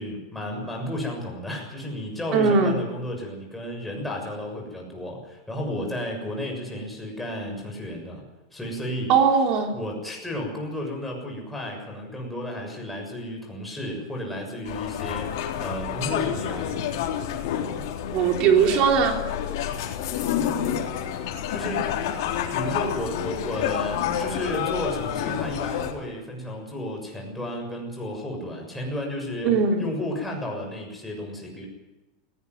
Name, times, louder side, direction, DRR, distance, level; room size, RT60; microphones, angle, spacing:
voice 1, 0.0-8.2 8.5-9.1 9.7-16.8 21.5-22.0 22.5-31.7, left 1 dB, 5° left, -1 dB, 6.9 m, -33 dB
voice 2, 2.3-2.8 9.1-9.8 18.1-19.2 29.4-29.9, right 6 dB, 45° right, 4 dB, 3.6 m, -20 dB
sound 1, 14.6-25.9, left 9 dB, 65° left, 3.8 m, -29 dB
18.5 x 18.0 x 9.5 m, 1.0 s
supercardioid pair, 150°, 2 cm